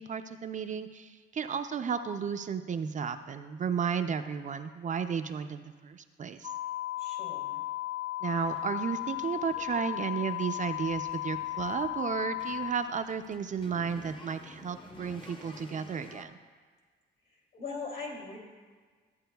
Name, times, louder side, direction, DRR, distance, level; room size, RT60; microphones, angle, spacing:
voice 1, 0.0-6.5 8.2-16.4, right 6 dB, 40° right, 8 dB, 0.4 m, -33 dB
sound 1, 6.4-12.7, left 16 dB, 80° left, 0.4 m, -35 dB
voice 2, 7.0-7.6 17.3-18.4, left 4 dB, 65° left, -1 dB, 2.8 m, -41 dB
sound 2, 8.3-16.2, left 2 dB, 25° left, 0.8 m, -53 dB
13.0 x 8.5 x 2.3 m, 1.5 s
cardioid pair, 90°, 20 cm